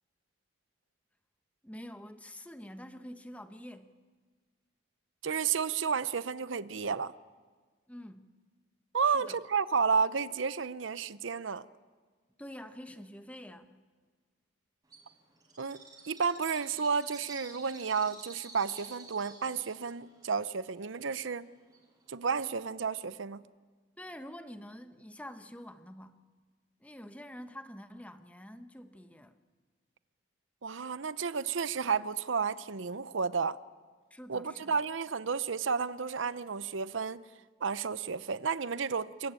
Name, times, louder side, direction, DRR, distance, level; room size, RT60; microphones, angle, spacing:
voice 1, 1.6-3.9 7.9-8.3 9.0-9.4 12.4-13.8 24.0-26.2 26.8-29.4 34.1-34.8, equal, 5° left, 1.1 m, -47 dB
voice 2, 5.2-7.1 8.9-11.7 15.6-21.5 22.1-23.4 30.6-33.6 34.3-37.2 37.6-39.3, right 5 dB, 85° right, 0.7 m, -32 dB
Bird, 14.9-22.1, right 3 dB, 20° right, 6.0 m, -52 dB
27.5 x 23.0 x 9.0 m
head